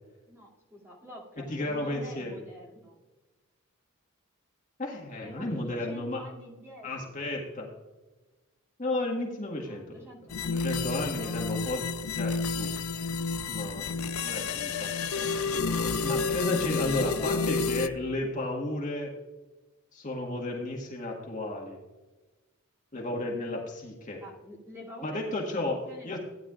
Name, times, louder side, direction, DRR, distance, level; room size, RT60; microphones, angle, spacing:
voice 1, 0.3-3.0 5.2-7.1 9.6-10.5 11.1-11.6 24.2-26.2, equal, 10° right, -5 dB, 2.8 m, -47 dB
voice 2, 1.5-2.3 4.8-6.2 6.8-7.7 8.8-10.0 10.5-11.8 12.2-19.1 19.9-21.8 22.9-24.2 25.0-25.8 26.0-26.2, left 2 dB, 35° left, -1 dB, 1.7 m, -33 dB
sound 1, 10.3-17.9, left 4 dB, 85° left, 0.5 m, -30 dB
16.0 x 10.0 x 2.5 m, 1.2 s
head